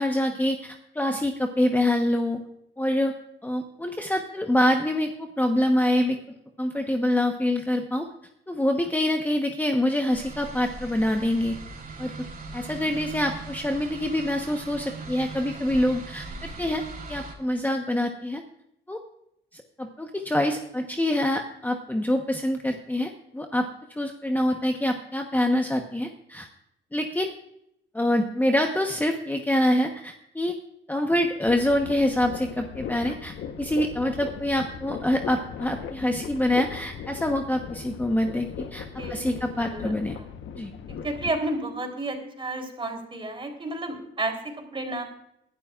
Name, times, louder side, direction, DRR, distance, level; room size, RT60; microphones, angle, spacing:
voice 1, 0.0-2.4 2.8-3.1 3.4-5.1 5.4-6.2 6.6-8.1 8.5-11.6 12.0-12.1 12.5-16.8 17.1-18.4 18.9-19.0 19.5-26.5 26.9-27.3 27.9-30.6 30.9-40.2 40.5-40.7, left 1 dB, 10° left, 4 dB, 1.0 m, -25 dB
sound 1, 10.1-17.3, right 3 dB, 45° right, 3.6 m, -40 dB
sound 2, 31.5-41.3, left 7 dB, 75° left, 1.1 m, -38 dB
voice 2, 39.0-39.9 40.2-40.3 40.9-44.4 44.7-45.0, right 2 dB, 25° right, 3 dB, 3.6 m, -31 dB
21.0 x 12.0 x 2.4 m, 0.78 s
cardioid pair, 90°, 20 cm